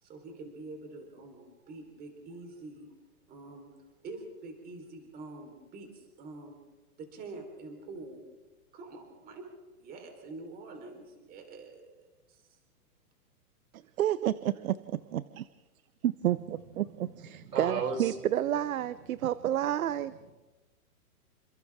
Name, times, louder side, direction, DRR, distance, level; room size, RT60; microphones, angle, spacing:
voice 1, 0.0-2.9 3.3-3.7 4.0-6.6 7.0-8.3 8.7-9.5 9.8-12.0 12.3-12.4, right 3 dB, 20° right, 3 dB, 4.1 m, -46 dB
voice 2, 14.0-15.5 16.0-20.1, right 12 dB, 65° right, 15 dB, 0.9 m, -30 dB
voice 3, 16.8-18.1 19.1-19.2, right 5 dB, 85° right, 5 dB, 4.8 m, -36 dB
29.0 x 26.5 x 3.7 m, 1.2 s
hypercardioid pair, 160°, 45 cm